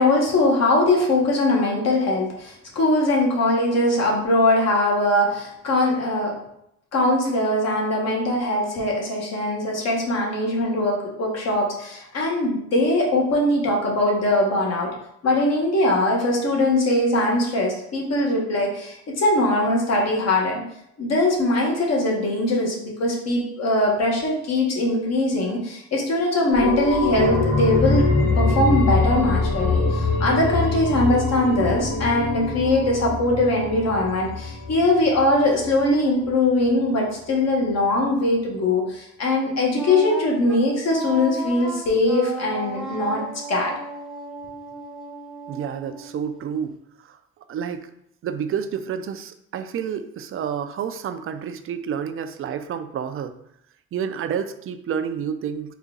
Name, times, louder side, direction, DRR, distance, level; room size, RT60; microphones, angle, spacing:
voice 1, 0.0-6.4 6.9-14.9 15.2-20.6 21.0-28.1 28.4-43.2 43.5-43.7, left 1 dB, 60° left, -2 dB, 1.3 m, -21 dB
sound 1, 26.5-35.9 36.2-36.3, left 3 dB, 80° left, 1.3 m, -24 dB
Wind instrument woodwind instrument, 39.7-46.7, right 2 dB, ahead, 0.8 m, -34 dB
voice 2, 45.5-46.8 47.0-47.2 47.5-47.9 48.2-53.4 53.9-55.7, right 8 dB, 45° right, 9 dB, 0.4 m, -29 dB
4.0 x 2.4 x 3.7 m, 0.76 s
cardioid pair, 90°, 30 cm